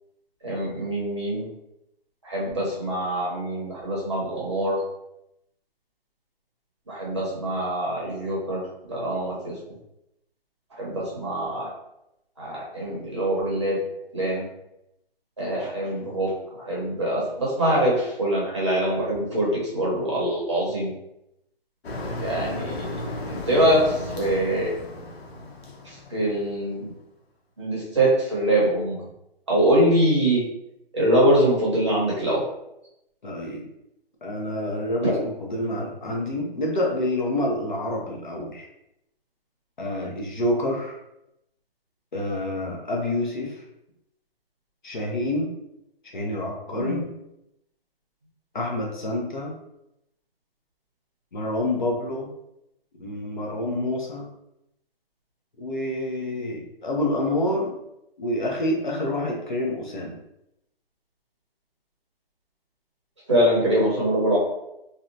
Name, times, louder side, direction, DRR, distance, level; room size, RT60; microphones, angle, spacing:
voice 1, 0.4-1.5 2.2-4.8 6.9-9.6 10.7-11.7 12.4-13.8 14.1-14.5 15.4-20.9 22.2-24.7 25.8-26.9 27.6-29.0 29.5-30.4 30.9-32.4 35.0-35.1 46.7-47.0 63.3-64.4, right 1 dB, 30° right, -6 dB, 0.7 m, -24 dB
Motor vehicle (road), 21.8-26.8, left 1 dB, 90° left, 0.8 m, -35 dB
voice 2, 33.2-33.6 34.2-38.7 39.8-41.0 42.1-43.6 44.8-45.5 46.1-47.0 48.5-49.6 51.3-52.3 53.0-54.3 55.6-57.8 58.2-60.2, left 1 dB, 50° left, -1 dB, 0.6 m, -27 dB
2.6 x 2.1 x 2.6 m, 0.83 s
hypercardioid pair, 175°, 30 cm